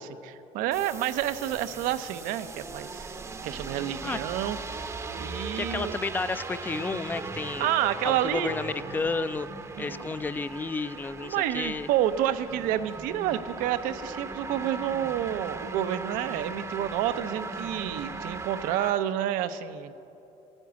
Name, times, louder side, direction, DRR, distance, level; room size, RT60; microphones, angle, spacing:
voice 1, 0.0-3.1 3.4-4.6 5.2-5.9 7.6-8.5 9.8-10.1 11.2-20.0, right 11 dB, 80° right, 12 dB, 0.7 m, -29 dB
sound 1, 0.7-18.9, right 3 dB, 20° right, 0.7 m, -38 dB
voice 2, 5.3-7.7 8.0-9.5 9.8-11.9, left 4 dB, 15° left, 14 dB, 0.4 m, -32 dB
16.5 x 9.8 x 8.1 m, 3.0 s
cardioid pair, 125°, 14 cm